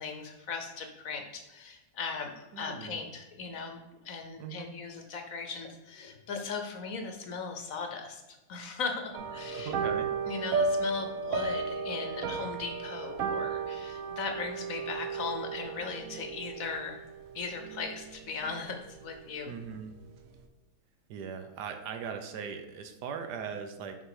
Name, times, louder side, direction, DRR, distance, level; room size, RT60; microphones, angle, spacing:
voice 1, 0.0-3.8 4.0-8.2 8.5-9.7 10.3-17.0 17.3-19.5, left 5 dB, 60° left, 5 dB, 1.1 m, -38 dB
voice 2, 2.5-3.0 4.4-4.7 9.5-10.1 19.4-19.9 21.1-24.0, right 6 dB, 80° right, 6 dB, 1.4 m, -39 dB
sound 1, 9.1-18.7 19.0-19.4 19.7-19.8, right 5 dB, 65° right, 1.0 m, -34 dB
6.3 x 4.7 x 4.8 m, 1.0 s
omnidirectional pair, 1.8 m